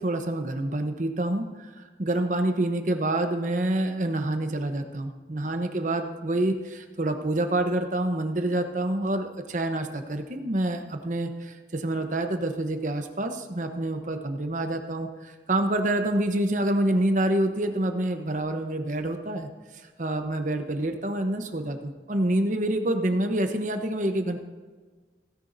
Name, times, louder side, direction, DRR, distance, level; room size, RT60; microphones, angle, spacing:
voice 1, 0.0-19.5 20.0-24.4, right 1 dB, 45° right, 6 dB, 0.9 m, -27 dB
16.5 x 10.0 x 2.7 m, 1.4 s
head